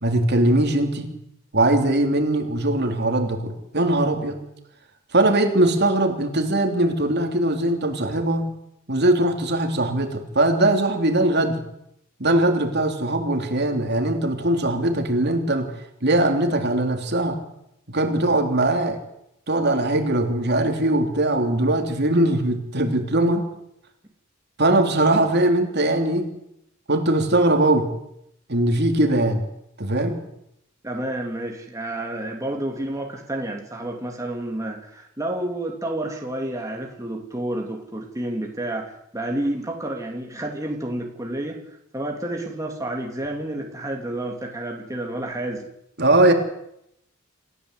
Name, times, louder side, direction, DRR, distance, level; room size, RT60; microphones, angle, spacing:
voice 1, 0.0-1.1 1.5-4.4 5.1-8.5 8.9-11.6 12.2-15.7 16.0-17.4 17.9-19.0 19.5-23.5 24.6-26.3 26.9-27.9 28.5-29.4 29.8-30.2 46.0-46.3, right 1 dB, 50° right, 4 dB, 3.4 m, -20 dB
voice 2, 30.8-41.6 41.9-45.7, right 1 dB, 15° right, 0 dB, 2.8 m, -30 dB
28.0 x 15.0 x 8.2 m, 0.78 s
head